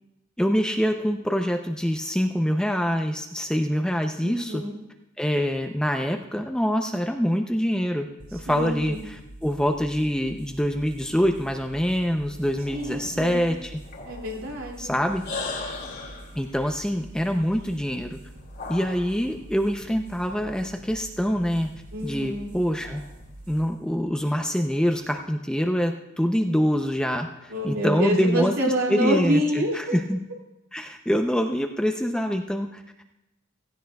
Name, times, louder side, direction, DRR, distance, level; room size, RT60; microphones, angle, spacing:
voice 1, 0.4-4.6 5.2-13.8 14.8-15.2 16.3-18.2 18.7-21.7 22.0-23.0 23.5-28.5 28.9-30.2 30.7-32.8, equal, 5° left, 4 dB, 0.5 m, -25 dB
voice 2, 4.2-4.8 8.5-9.0 12.7-13.6 14.0-15.0 21.9-22.5 27.5-30.0, equal, 75° right, -1 dB, 2.5 m, -27 dB
sound 1, 8.2-25.2, right 1 dB, 35° right, 2.0 m, -46 dB
sound 2, 11.8-19.4 20.2-21.7 22.0-23.3, left 3 dB, 50° left, 2.5 m, -40 dB
16.5 x 15.5 x 2.3 m, 0.92 s
head